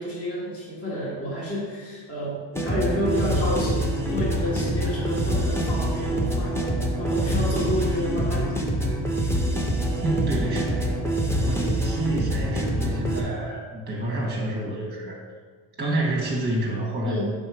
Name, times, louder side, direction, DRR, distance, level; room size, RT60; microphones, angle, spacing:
voice 1, 0.0-8.6 17.0-17.3, equal, 30° left, -6 dB, 1.8 m, -30 dB
sound 1, 2.5-13.2, right 1 dB, 5° left, 0.7 m, -25 dB
voice 2, 10.0-11.0 11.4-15.2 15.8-17.3, right 1 dB, 20° right, -3 dB, 1.2 m, -28 dB
5.6 x 3.8 x 4.7 m, 1.5 s
cardioid pair, 105°, 49 cm